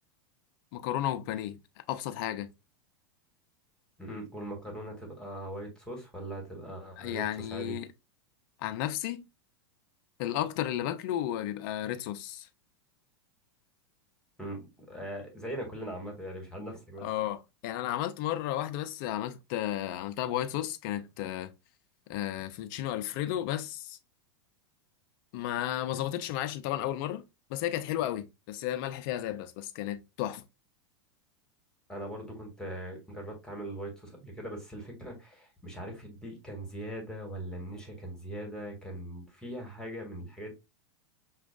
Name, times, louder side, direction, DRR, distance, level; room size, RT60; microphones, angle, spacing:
voice 1, 0.7-1.6 1.9-2.5 7.0-7.9 8.6-9.3 10.2-12.5 17.0-21.5 22.1-24.0 25.3-27.2 27.5-30.4, left 12 dB, 55° left, 0.6 m, -33 dB
voice 2, 4.0-7.8 14.4-17.1 31.9-40.5, right 1 dB, 5° left, 1.7 m, -40 dB
6.0 x 2.4 x 2.4 m
hypercardioid pair, 105°, 13 cm